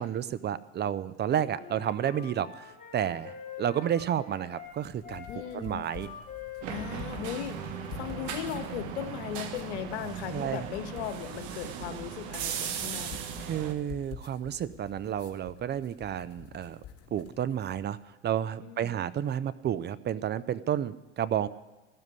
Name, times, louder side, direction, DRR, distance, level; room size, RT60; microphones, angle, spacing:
voice 1, 0.0-5.3 5.5-6.1 10.3-10.7 13.4-16.8 17.1-21.5, right 10 dB, 30° right, 16 dB, 0.5 m, -31 dB
Wind instrument woodwind instrument, 1.5-8.5, left 6 dB, 25° left, 3.4 m, -46 dB
sound 1, 4.6-18.0, left 10 dB, 45° left, 2.2 m, -49 dB
voice 2, 5.3-5.9 6.7-13.5 18.6-19.0, left 11 dB, 75° left, 9 dB, 1.3 m, -38 dB
sound 2, 6.6-13.7, right 8 dB, 60° right, 1.5 m, -37 dB
14.5 x 7.3 x 9.5 m, 1.2 s
hypercardioid pair, 80°, 34 cm